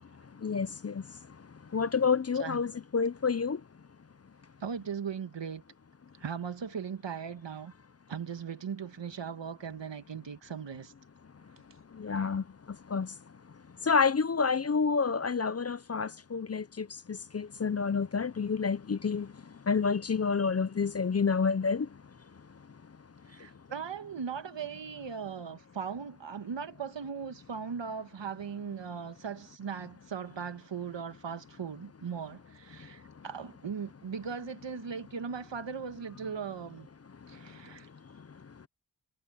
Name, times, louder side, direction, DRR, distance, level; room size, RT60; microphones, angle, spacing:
voice 1, 0.4-1.0 1.7-3.6 12.0-12.4 12.9-13.1 13.9-19.3 19.7-21.9, left 5 dB, 35° left, 0.6 m, -29 dB
voice 2, 4.6-5.6 6.2-7.7 8.1-10.9 12.1-12.3 23.3-36.9 37.3-37.9, right 6 dB, 80° right, 1.5 m, -38 dB
wide cardioid pair, 65°, 43 cm